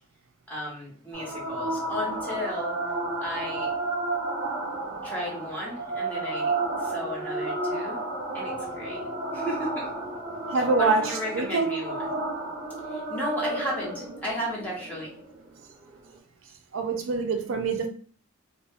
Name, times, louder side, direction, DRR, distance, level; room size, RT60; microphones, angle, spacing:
voice 1, 0.5-2.8 3.2-3.7 5.0-6.5 6.8-8.0 8.3-9.0 9.3-9.9 10.8-12.0 12.9-15.1, equal, 10° left, 1.0 m, -34 dB
sound 1, 1.1-16.1, right 2 dB, 35° right, 1.0 m, -32 dB
voice 2, 10.5-11.7 16.7-17.9, right 4 dB, 75° right, 0.4 m, -25 dB
2.2 x 2.0 x 3.4 m
head